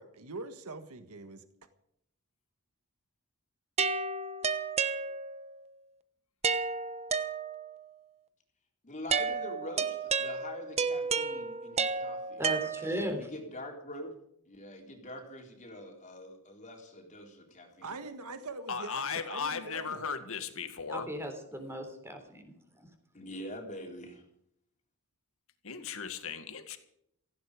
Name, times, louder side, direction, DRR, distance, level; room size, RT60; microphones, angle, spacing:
voice 1, 0.0-1.4 17.8-20.1, right 3 dB, 85° right, 8 dB, 1.6 m, -43 dB
sound 1, 3.8-5.6 6.4-7.9 9.1-13.2, right 5 dB, 30° right, 1.0 m, -32 dB
voice 2, 8.8-12.4 13.0-14.1 14.5-18.0 23.1-24.2, left 1 dB, 35° left, 1 dB, 3.8 m, -44 dB
voice 3, 12.4-13.3 20.9-22.5, right 1 dB, 10° right, 5 dB, 3.7 m, -36 dB
voice 4, 18.7-21.1 25.6-26.8, left 6 dB, 65° left, 8 dB, 2.0 m, -36 dB
17.5 x 15.5 x 5.0 m, 0.73 s
head